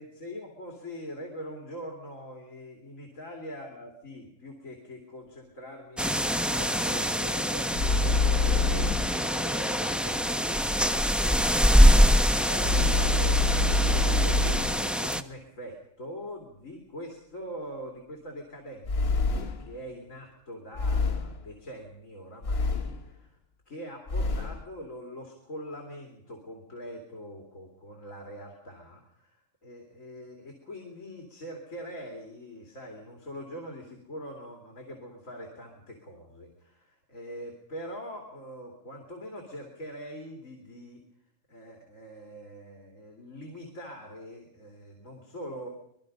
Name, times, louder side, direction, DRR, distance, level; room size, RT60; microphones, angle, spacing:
voice 1, 0.0-23.4 23.7-41.0 41.5-45.7, equal, 90° left, 1 dB, 3.4 m, -43 dB
sound 1, 6.0-15.2, equal, ahead, 0.7 m, -24 dB
sound 2, 7.8-9.2 12.6-14.9 18.8-19.7 20.8-21.4 22.4-23.1 24.1-24.6, left 3 dB, 55° left, 1.3 m, -26 dB
25.5 x 21.0 x 5.3 m, 0.72 s
omnidirectional pair, 1.3 m